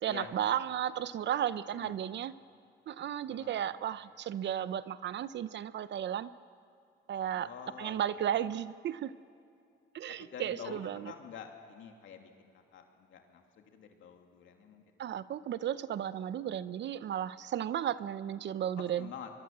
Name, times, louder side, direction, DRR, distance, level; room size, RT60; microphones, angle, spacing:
voice 1, 0.0-2.3 2.9-6.3 7.1-7.5 7.8-9.1 9.9-11.1 15.0-19.1, right 10 dB, 65° right, 15 dB, 0.8 m, -34 dB
voice 2, 3.3-3.7 7.3-8.2 10.2-14.8 18.8-19.3, left 7 dB, 75° left, 3 dB, 2.7 m, -48 dB
24.5 x 22.5 x 7.6 m, 2.5 s
cardioid pair, 90°, 20 cm